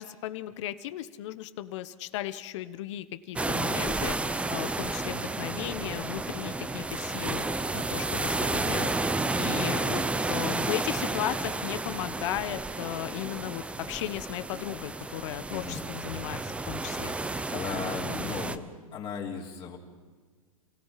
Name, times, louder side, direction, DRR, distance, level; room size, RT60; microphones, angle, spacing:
voice 1, 0.0-4.2 4.5-7.5 7.7-8.9 9.4-10.0 10.3-17.1 18.0-18.4, left 13 dB, 55° left, 12 dB, 1.3 m, -36 dB
sound 1, 3.4-18.6, right 2 dB, 5° right, 0.8 m, -31 dB
voice 2, 15.5-15.8 17.5-18.6 18.9-19.8, left 6 dB, 30° left, -1 dB, 3.4 m, -36 dB
29.0 x 17.0 x 5.9 m, 1.5 s
hypercardioid pair, 125°, 18 cm